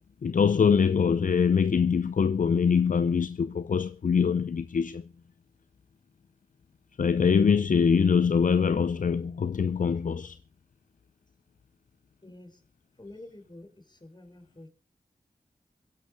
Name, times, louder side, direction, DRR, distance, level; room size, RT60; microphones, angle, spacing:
voice 1, 0.2-5.0 7.0-10.4, left 6 dB, 65° left, 0.6 m, -23 dB
voice 2, 12.2-12.6 13.0-14.7, left 1 dB, 30° left, 5.2 m, -48 dB
22.5 x 11.0 x 4.0 m
cardioid pair, 40°, 15 cm